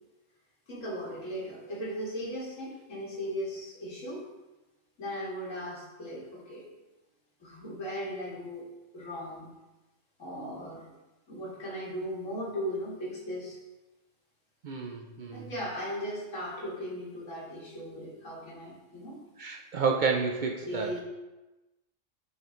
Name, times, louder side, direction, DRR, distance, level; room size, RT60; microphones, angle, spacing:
voice 1, 0.7-4.2 5.0-6.7 7.4-8.7 8.9-9.5 10.2-10.8 11.3-13.6 15.3-19.2 20.6-21.0, equal, 75° left, -5 dB, 2.2 m, -37 dB
voice 2, 14.6-15.5 19.4-21.0, right 5 dB, 65° right, 1 dB, 0.4 m, -30 dB
8.6 x 3.5 x 3.8 m, 1.1 s
omnidirectional pair, 1.3 m